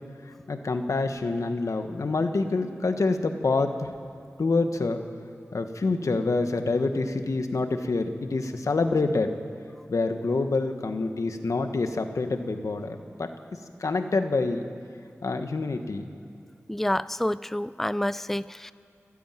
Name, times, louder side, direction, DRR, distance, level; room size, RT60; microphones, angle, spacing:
voice 1, 0.5-3.9 4.4-5.0 5.5-9.3 9.9-13.3 13.8-14.6 15.2-16.1, left 3 dB, 85° left, 7 dB, 1.4 m, -26 dB
voice 2, 16.7-18.7, left 1 dB, 5° left, 16 dB, 0.4 m, -28 dB
30.0 x 10.0 x 9.2 m, 2.6 s
wide cardioid pair, 60°, 5 cm